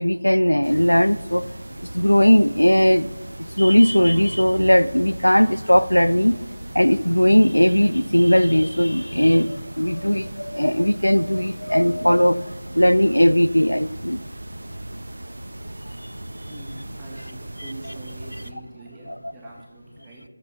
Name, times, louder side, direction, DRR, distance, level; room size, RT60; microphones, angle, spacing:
voice 1, 0.0-1.5 1.9-3.1 3.6-6.4 6.7-12.4 12.7-14.2 19.1-19.3, equal, 90° left, 18 dB, 0.4 m, -18 dB
sound 1, 0.6-18.5, right 1 dB, 65° right, 0.8 m, -38 dB
voice 2, 16.5-20.2, right 2 dB, 10° right, -3 dB, 1.6 m, -42 dB
13.5 x 6.8 x 4.1 m, 1.2 s
figure-of-eight pair, 165°, 0 cm